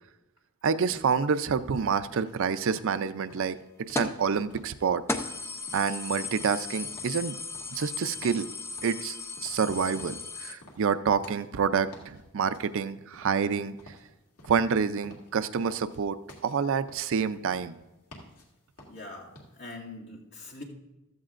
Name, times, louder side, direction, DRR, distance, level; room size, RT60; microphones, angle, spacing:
voice 1, 0.6-5.0 5.7-7.4 7.7-8.5 8.8-13.8 14.5-17.8, right 6 dB, 60° right, 13 dB, 0.4 m, -28 dB
sound 1, 1.5-19.8, left 1 dB, 85° left, 2.1 m, -53 dB
sound 2, 4.0-4.2 4.7-4.8 5.1-10.5, left 3 dB, 10° left, 0.6 m, -36 dB
voice 2, 18.9-20.6, left 2 dB, 55° left, -4 dB, 2.4 m, -43 dB
15.0 x 13.5 x 2.5 m, 0.99 s
head